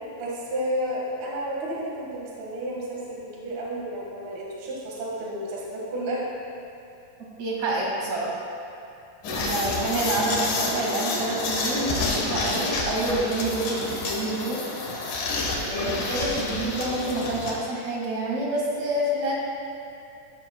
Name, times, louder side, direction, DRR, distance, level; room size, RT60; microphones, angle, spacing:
voice 1, 0.2-6.2 9.5-9.8 15.6-16.0, right 1 dB, 85° right, -4 dB, 1.1 m, -32 dB
voice 2, 7.4-8.3 9.3-14.6 15.6-19.3, right 2 dB, 50° right, -4 dB, 2.6 m, -28 dB
sound 1, 9.2-17.6, left 3 dB, 65° left, 2.1 m, -29 dB
14.5 x 12.5 x 2.3 m, 2.7 s
omnidirectional pair, 5.3 m